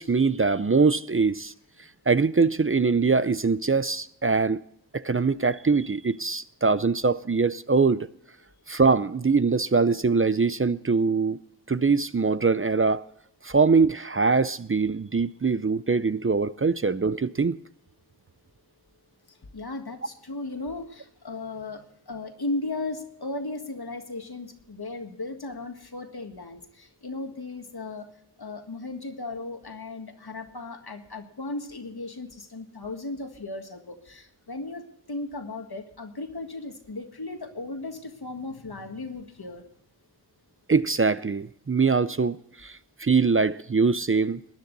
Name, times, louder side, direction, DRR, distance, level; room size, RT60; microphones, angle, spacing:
voice 1, 0.0-1.5 2.1-4.6 4.9-8.1 8.7-11.4 11.7-13.0 13.4-17.6 40.7-44.6, right 4 dB, 35° right, 0.5 m, -23 dB
voice 2, 19.3-28.1 28.4-39.6, left 2 dB, 70° left, 1.8 m, -36 dB
20.0 x 10.5 x 4.0 m
wide cardioid pair, 45°, 39 cm